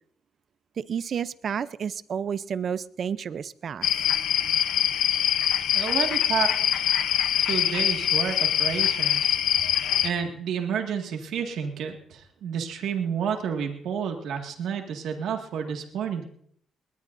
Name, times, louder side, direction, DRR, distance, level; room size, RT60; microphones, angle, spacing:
voice 1, 0.8-3.9, right 7 dB, 55° right, 16 dB, 0.6 m, -31 dB
sound 1, 3.8-10.1, left 10 dB, 80° left, 0.8 m, -24 dB
voice 2, 5.7-6.9 7.5-9.4 9.6-16.2, right 7 dB, 75° right, 3 dB, 2.0 m, -30 dB
21.0 x 19.0 x 2.7 m, 0.63 s
cardioid pair, 90°, 0 cm